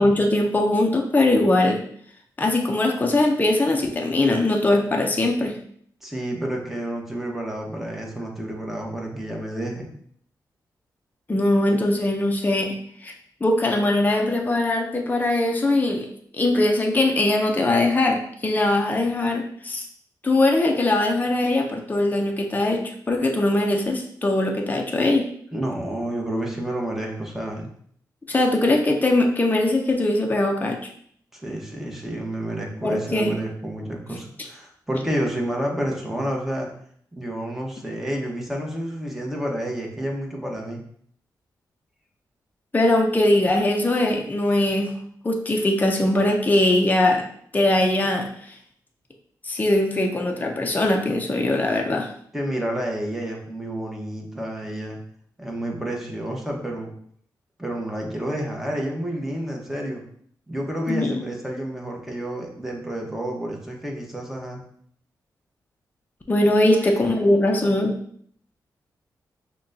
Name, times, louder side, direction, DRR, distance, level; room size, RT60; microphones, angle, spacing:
voice 1, 0.0-1.8 2.4-5.6 11.3-12.8 13.0-13.1 13.4-16.1 16.3-19.9 20.2-25.3 28.3-30.8 32.8-33.3 42.7-44.9 45.2-47.2 47.5-48.5 49.4-52.1 60.9-61.2 66.3-67.9, left 1 dB, 25° left, 2 dB, 0.6 m, -21 dB
voice 2, 6.0-9.9 25.5-27.7 31.3-36.7 37.1-40.8 52.3-55.0 55.4-56.9 57.6-60.0 60.5-64.6 66.7-67.6, right 1 dB, 5° right, -1 dB, 1.1 m, -30 dB
5.8 x 2.2 x 2.7 m, 0.62 s
cardioid pair, 60°, 8 cm